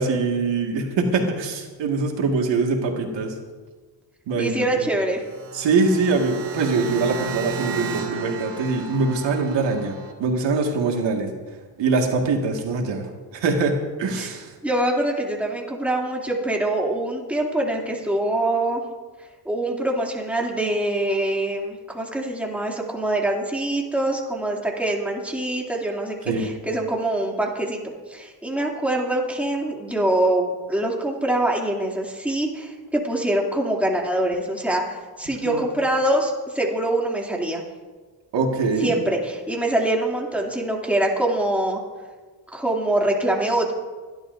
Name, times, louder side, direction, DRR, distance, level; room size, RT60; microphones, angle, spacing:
voice 1, 0.0-3.3 4.3-4.8 5.5-9.9 10.2-11.3 11.8-13.0 13.3-14.5 26.3-26.5 35.4-35.6 38.3-38.9, right 4 dB, 85° right, 2 dB, 2.0 m, -23 dB
voice 2, 4.4-5.2 14.2-14.3 14.6-18.8 19.4-37.6 38.8-41.8 42.5-43.7, right 1 dB, 5° right, -2 dB, 2.7 m, -24 dB
sound 1, 5.1-10.1, right 4 dB, 55° right, 2.3 m, -33 dB
30.0 x 11.5 x 2.7 m, 1.4 s
cardioid pair, 105°, 42 cm